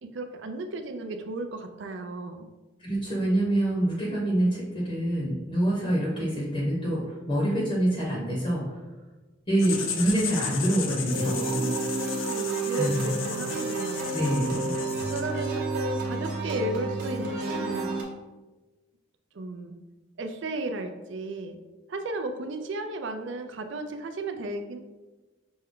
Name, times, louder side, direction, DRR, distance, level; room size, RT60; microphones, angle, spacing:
voice 1, 0.0-2.5 11.6-14.1 15.0-18.0 19.3-19.7 20.2-21.6 21.9-24.8, right 2 dB, 70° right, 6 dB, 0.4 m, -34 dB
voice 2, 2.8-8.6 9.5-11.6 12.7-13.1 14.1-14.7, right 1 dB, 30° left, -4 dB, 0.8 m, -26 dB
Writing, 9.6-15.6, left 6 dB, 85° left, 0.5 m, -35 dB
sound 1, 11.1-18.0, right 3 dB, 45° right, 0.8 m, -31 dB
5.1 x 2.2 x 3.6 m, 1.2 s
head